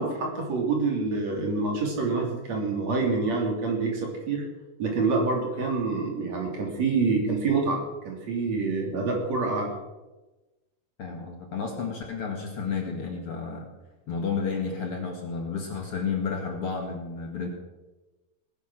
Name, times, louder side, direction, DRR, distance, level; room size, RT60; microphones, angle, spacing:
voice 1, 0.0-4.4 4.8-7.8 8.0-9.7, right 4 dB, 55° right, 0 dB, 4.2 m, -26 dB
voice 2, 11.0-13.7 14.1-17.5, left 5 dB, 45° left, 2 dB, 2.7 m, -31 dB
19.0 x 10.5 x 6.2 m, 1.1 s
omnidirectional pair, 3.8 m